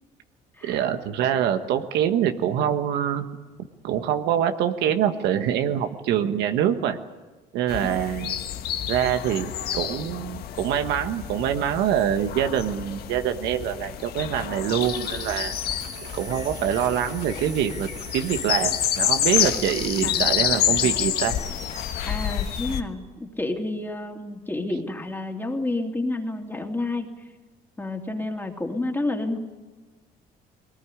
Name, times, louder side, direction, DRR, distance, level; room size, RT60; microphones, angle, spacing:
voice 1, 0.6-3.3 3.8-7.0 7.5-8.3 8.8-15.5 16.1-17.9 18.1-21.4, right 10 dB, 85° right, 7 dB, 1.5 m, -25 dB
sound 1, 7.7-22.8, left 10 dB, 65° left, 1.5 m, -28 dB
sound 2, 14.8-22.8, left 3 dB, 45° left, 3.3 m, -39 dB
voice 2, 20.0-20.4 20.8-20.9 22.1-27.1 27.8-29.4, left 2 dB, 10° left, 2 dB, 3.0 m, -30 dB
21.5 x 19.0 x 9.9 m, 1.3 s
cardioid pair, 110°, 17 cm